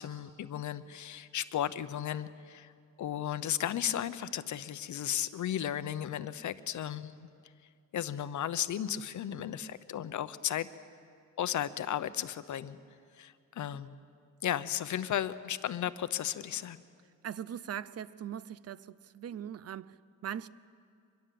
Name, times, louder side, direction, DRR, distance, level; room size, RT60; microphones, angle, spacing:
voice 1, 0.0-2.7 3.0-7.3 7.9-10.7 11.4-12.8 13.2-13.9 14.4-16.8, left 10 dB, 65° left, 0.8 m, -34 dB
voice 2, 17.2-20.5, right 9 dB, 50° right, 0.5 m, -40 dB
25.0 x 22.0 x 7.6 m
wide cardioid pair, 160°, 33 cm